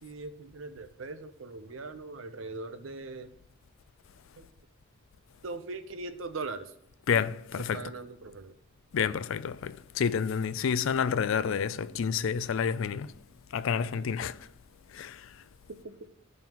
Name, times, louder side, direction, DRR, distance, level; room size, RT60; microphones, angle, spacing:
voice 1, 0.0-3.3 4.4-4.5 5.4-6.7 7.7-8.5 15.8-15.9, right 3 dB, 65° right, 0.7 m, -40 dB
voice 2, 7.1-7.9 8.9-13.1 13.5-14.5 14.9-15.4, left 7 dB, 65° left, 0.4 m, -29 dB
14.5 x 5.4 x 3.0 m
head